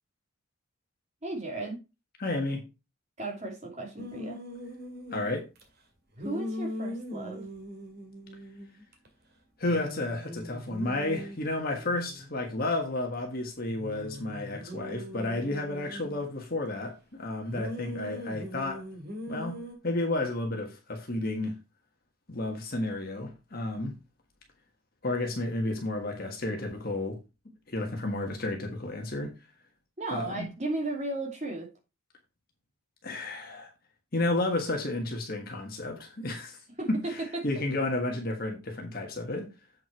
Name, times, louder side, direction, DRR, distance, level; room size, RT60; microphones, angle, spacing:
voice 1, 1.2-1.8 3.2-4.4 6.2-7.4 30.0-31.7 36.8-37.4, right 2 dB, 30° right, 2.8 m, -35 dB
voice 2, 2.2-2.6 5.1-5.5 9.6-18.8 19.3-21.5 22.3-24.0 25.0-27.2 27.7-29.3 30.1-30.5 33.0-33.7 34.1-39.5, left 2 dB, 45° left, 1.5 m, -32 dB
sound 1, 4.0-5.6 6.2-9.1 9.3-9.4 9.7-13.1 13.7-16.4 17.5-19.7, equal, 50° right, 2.2 m, -41 dB
7.7 x 5.8 x 4.6 m
head